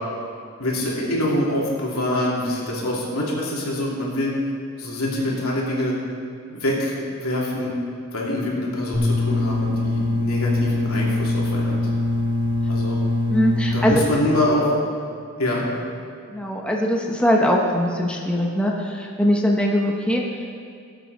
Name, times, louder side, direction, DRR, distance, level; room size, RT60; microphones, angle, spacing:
voice 1, 0.6-4.3 4.8-5.9 6.5-7.7 8.1-11.8 12.7-13.0 13.7-14.7 15.4-15.6, left 1 dB, 80° left, -4 dB, 2.8 m, -25 dB
sound 1, 8.9-13.9, left 2 dB, 20° right, 2.6 m, -23 dB
voice 2, 13.3-14.0 16.3-20.6, equal, 5° left, -1 dB, 0.9 m, -21 dB
18.0 x 7.9 x 4.1 m, 2.4 s
head